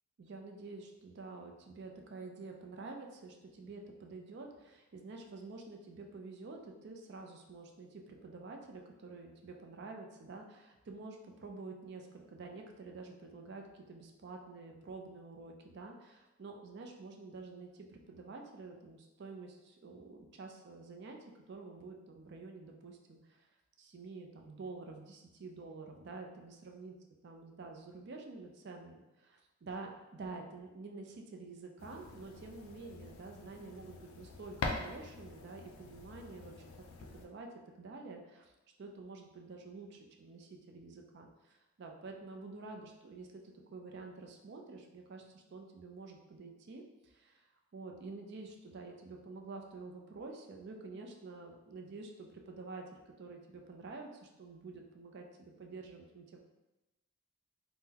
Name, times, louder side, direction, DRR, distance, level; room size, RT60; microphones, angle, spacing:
voice 1, 0.2-21.2 21.5-23.5 23.8-27.0 27.2-36.6 37.0-37.5 37.8-38.5 38.8-47.4 47.7-56.4, right 3 dB, 55° right, 2 dB, 0.4 m, -49 dB
sound 1, 31.8-37.3, left 3 dB, 85° left, 0.4 m, -44 dB
3.7 x 2.1 x 2.8 m, 1.0 s
head